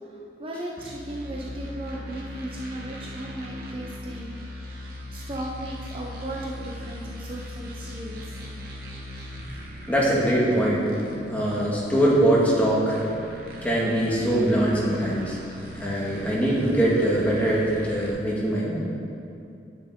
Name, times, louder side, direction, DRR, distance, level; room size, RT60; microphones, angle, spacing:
voice 1, 0.1-4.8 5.1-8.3, right 1 dB, 30° right, -2 dB, 0.7 m, -36 dB
sound 1, 0.8-18.1, equal, 55° right, 1.2 m, -39 dB
voice 2, 9.9-10.8 11.3-13.0 13.6-15.4 15.7-18.8, right 1 dB, 10° left, -6 dB, 1.8 m, -22 dB
9.8 x 8.5 x 3.7 m, 2.5 s
head